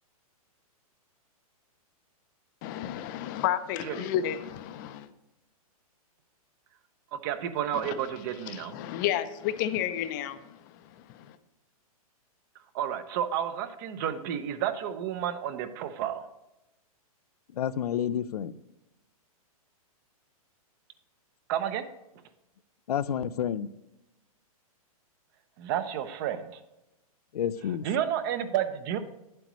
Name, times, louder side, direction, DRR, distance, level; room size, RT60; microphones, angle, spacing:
voice 1, 2.6-5.1 7.7-7.9 8.5-11.4, left 11 dB, 35° left, 0.5 m, -32 dB
voice 2, 7.2-8.7 12.7-16.3 21.5-21.8 25.6-26.6 27.8-29.0, right 10 dB, 35° right, 0.6 m, -31 dB
voice 3, 17.5-18.6 22.9-23.7 27.3-27.9, left 9 dB, 90° left, 0.5 m, -30 dB
9.2 x 7.7 x 3.1 m
hypercardioid pair, 150°, 19 cm